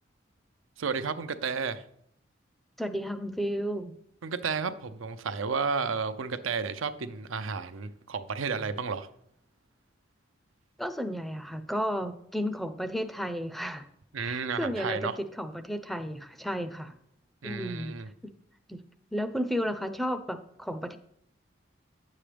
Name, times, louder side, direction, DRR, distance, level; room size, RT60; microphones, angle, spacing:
voice 1, 0.8-1.8 4.2-9.1 14.1-15.2 17.4-18.1, right 5 dB, 90° right, 0.6 m, -32 dB
voice 2, 2.8-4.0 10.8-13.9 14.2-16.9 17.4-17.9 18.2-18.3 18.7-18.8 19.1-21.0, equal, ahead, 0.5 m, -33 dB
10.0 x 7.4 x 3.4 m
head